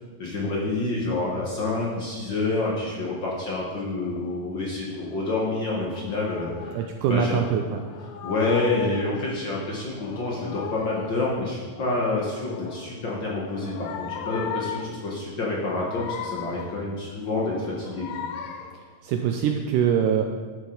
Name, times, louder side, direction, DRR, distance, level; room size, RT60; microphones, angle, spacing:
voice 1, 0.2-7.4 8.2-18.1, left 2 dB, 55° left, -4 dB, 1.4 m, -28 dB
sound 1, 2.4-2.7 4.0-4.4 4.9-6.8 7.5-9.3 9.8-11.3 11.7-12.9 13.4-15.1 15.5-16.9 17.4-18.9, left 8 dB, 75° left, 1.7 m, -38 dB
voice 2, 6.7-7.8 19.0-20.2, right 8 dB, 80° right, 4 dB, 2.0 m, -23 dB
11.5 x 8.3 x 3.9 m, 1.5 s
omnidirectional pair, 3.9 m